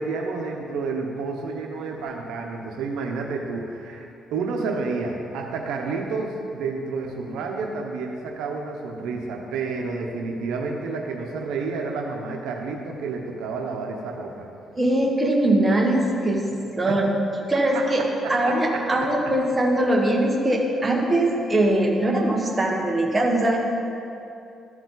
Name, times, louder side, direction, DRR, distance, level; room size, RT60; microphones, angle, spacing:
voice 1, 0.0-4.1 4.3-14.5 16.9-17.0 17.7-17.8 18.2-18.8, right 4 dB, 90° right, 1 dB, 0.9 m, -30 dB
voice 2, 14.8-16.4 16.8-17.1 17.5-18.0 18.3-23.6, right 1 dB, 20° right, -1 dB, 1.5 m, -21 dB
13.5 x 4.8 x 4.0 m, 2.6 s
cardioid pair, 90°, 0 cm